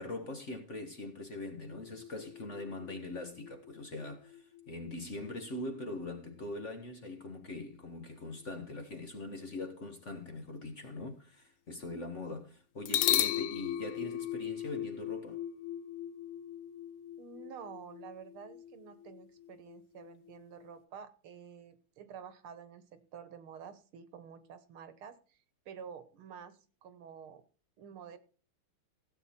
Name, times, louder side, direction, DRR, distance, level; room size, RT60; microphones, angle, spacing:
voice 1, 0.0-15.4, left 2 dB, 40° left, 1.3 m, -42 dB
sound 1, 1.7-5.3 12.9-20.7, left 12 dB, 90° left, 1.7 m, -37 dB
voice 2, 17.2-27.4 27.8-28.2, right 7 dB, 75° right, 2.0 m, -50 dB
16.0 x 7.9 x 4.2 m
omnidirectional pair, 2.4 m